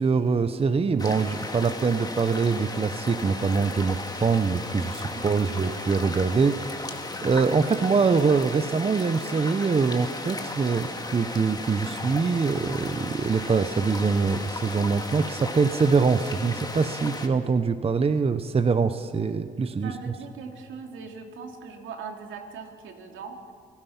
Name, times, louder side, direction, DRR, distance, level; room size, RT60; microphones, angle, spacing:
voice 1, 0.0-19.9, right 5 dB, 30° right, 11 dB, 0.8 m, -24 dB
sound 1, 1.0-17.3, left 2 dB, 20° left, 2.2 m, -35 dB
voice 2, 5.1-5.7 19.8-23.4, right 5 dB, 80° right, 3 dB, 2.8 m, -40 dB
29.0 x 18.0 x 5.9 m, 2.2 s
cardioid pair, 90°, 20 cm